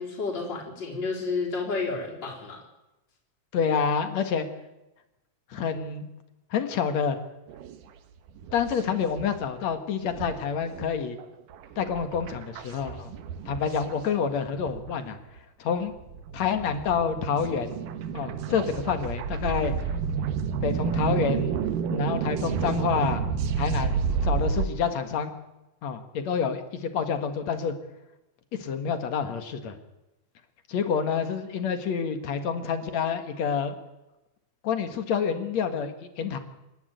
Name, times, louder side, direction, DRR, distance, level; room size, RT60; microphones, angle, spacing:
voice 1, 0.0-2.6, left 4 dB, 35° left, -4 dB, 4.4 m, -31 dB
voice 2, 3.5-4.5 5.5-6.1 6.5-7.2 8.5-11.2 11.8-13.1 13.5-15.2 15.6-15.9 16.3-17.8 18.1-19.7 20.6-21.6 21.9-23.2 23.6-25.3 25.8-27.7 28.5-29.8 30.7-33.8 34.6-36.4, left 6 dB, 60° left, 9 dB, 2.7 m, -28 dB
sound 1, 7.5-7.8 8.3-9.5 9.7-9.8 10.1-14.9 15.4-15.5 15.9-24.7, right 6 dB, 90° right, 2.9 m, -30 dB
27.5 x 11.0 x 9.2 m, 0.97 s
omnidirectional pair, 3.7 m